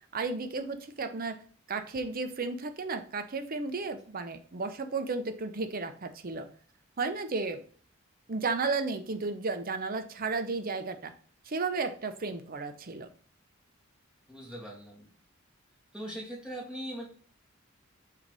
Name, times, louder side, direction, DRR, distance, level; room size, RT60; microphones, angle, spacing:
voice 1, 0.1-1.4 1.7-6.5 7.0-7.6 8.3-11.1 11.5-13.1, right 4 dB, 45° right, 9 dB, 0.6 m, -33 dB
voice 2, 14.3-15.1 15.9-17.1, equal, 5° right, -5 dB, 2.3 m, -40 dB
5.7 x 3.9 x 4.7 m, 0.43 s
head